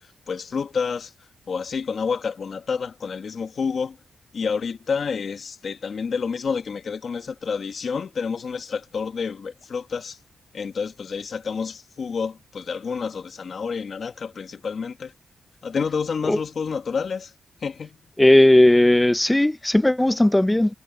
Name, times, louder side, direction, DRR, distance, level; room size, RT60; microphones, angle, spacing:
voice 1, 0.3-1.1 1.5-4.0 4.3-10.2 10.5-15.1 15.6-17.3 17.6-18.0, left 5 dB, 55° left, 1.6 m, -29 dB
voice 2, 18.2-20.7, left 1 dB, 10° left, 0.6 m, -16 dB
wide cardioid pair, 110°, 0 cm